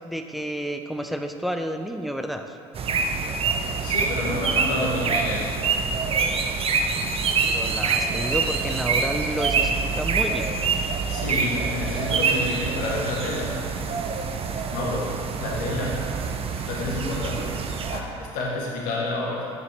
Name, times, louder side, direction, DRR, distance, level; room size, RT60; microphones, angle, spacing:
voice 1, 0.0-2.6 7.4-10.5, equal, ahead, 5 dB, 0.5 m, -30 dB
sound 1, 2.7-18.0, right 5 dB, 40° right, 0.7 m, -26 dB
voice 2, 3.8-5.5 11.1-13.6 14.7-16.1 16.6-17.6 17.9-19.5, left 2 dB, 70° left, -3 dB, 1.3 m, -29 dB
6.9 x 6.8 x 3.4 m, 2.4 s
hypercardioid pair, 65°, 15 cm